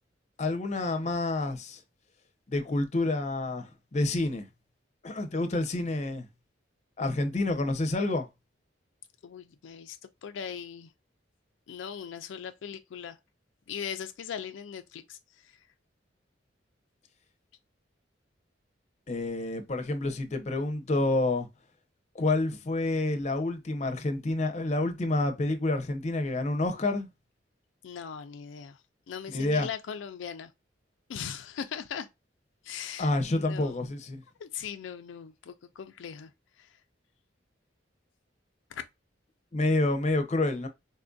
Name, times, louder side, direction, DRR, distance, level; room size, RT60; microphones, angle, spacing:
voice 1, 0.4-1.8 2.5-4.5 5.0-6.3 7.0-8.3 19.1-21.5 22.1-27.1 29.3-29.7 33.0-34.2 39.5-40.7, left 2 dB, 40° left, 0.6 m, -28 dB
voice 2, 9.2-10.9 11.7-13.2 13.7-15.5 27.8-28.8 29.1-30.5 31.1-32.1 32.6-33.8 34.4-36.3 36.6-36.7 38.7-38.8, left 7 dB, 85° left, 0.4 m, -39 dB
4.1 x 2.6 x 2.3 m
head